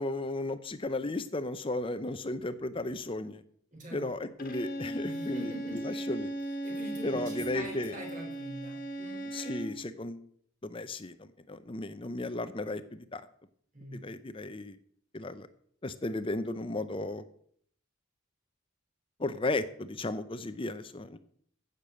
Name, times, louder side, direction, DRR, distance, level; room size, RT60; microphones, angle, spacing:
voice 1, 0.0-3.4 3.9-6.3 7.0-8.0 9.3-10.2 10.6-13.2 13.9-14.8 15.1-15.5 15.8-17.2 19.2-21.2, left 2 dB, 25° left, 12 dB, 0.6 m, -35 dB
voice 2, 3.7-4.3 5.0-6.0 6.6-9.3 13.7-14.0, right 1 dB, 35° right, 1 dB, 4.8 m, -44 dB
Bowed string instrument, 4.4-9.8, right 1 dB, 45° left, 1.5 m, -37 dB
15.5 x 6.8 x 7.5 m, 0.64 s
head